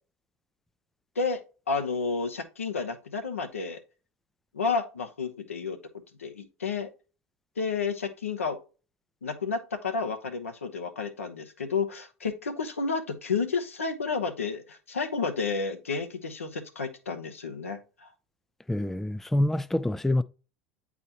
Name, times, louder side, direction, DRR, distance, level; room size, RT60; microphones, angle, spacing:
voice 1, 1.1-3.8 4.5-5.8 6.2-6.9 7.6-8.6 9.2-18.1, left 4 dB, 90° left, 0.9 m, -31 dB
voice 2, 18.7-20.2, left 1 dB, 5° left, 0.3 m, -26 dB
8.7 x 4.0 x 2.8 m
hypercardioid pair, 80°, 7 cm